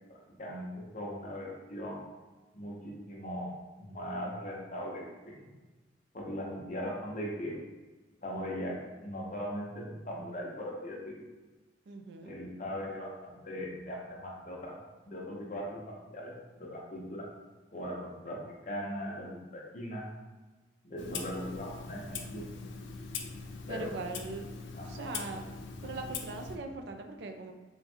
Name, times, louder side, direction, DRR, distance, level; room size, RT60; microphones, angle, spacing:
voice 1, 0.1-2.0 2.5-5.5 6.1-7.6 8.2-11.2 12.2-14.7 15.1-17.3 17.7-20.1 20.8-22.4 23.7-23.9 24.7-25.1, equal, 40° left, -2 dB, 0.8 m, -39 dB
voice 2, 11.9-12.3 23.7-24.4 24.9-25.5 25.8-27.5, right 3 dB, 60° right, 4 dB, 0.4 m, -40 dB
Clock, 21.0-26.6, left 5 dB, 75° left, 0.5 m, -42 dB
3.6 x 2.2 x 4.3 m, 1.2 s
head